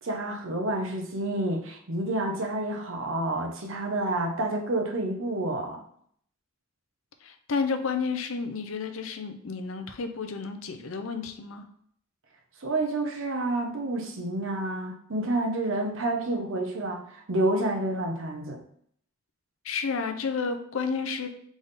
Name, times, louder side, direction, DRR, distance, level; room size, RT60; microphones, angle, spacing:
voice 1, 0.0-5.8 12.6-18.6, right 2 dB, 65° right, 3 dB, 0.8 m, -29 dB
voice 2, 7.2-11.7 19.6-21.3, left 5 dB, 75° left, 7 dB, 0.6 m, -31 dB
3.6 x 3.5 x 4.0 m, 0.65 s
head